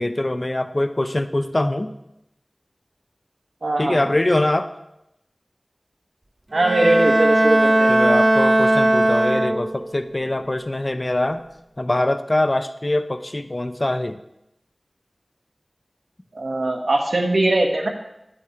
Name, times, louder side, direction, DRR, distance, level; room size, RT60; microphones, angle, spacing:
voice 1, 0.0-1.9 3.8-4.7 7.9-11.4 11.8-14.2, left 1 dB, 40° left, 10 dB, 0.5 m, -23 dB
voice 2, 3.6-4.1 6.5-7.9 16.3-17.9, right 2 dB, 90° right, 1 dB, 1.3 m, -20 dB
Bowed string instrument, 6.6-10.0, right 1 dB, 40° right, 0.6 m, -18 dB
9.5 x 8.6 x 4.3 m, 0.86 s
wide cardioid pair, 50°, 0 cm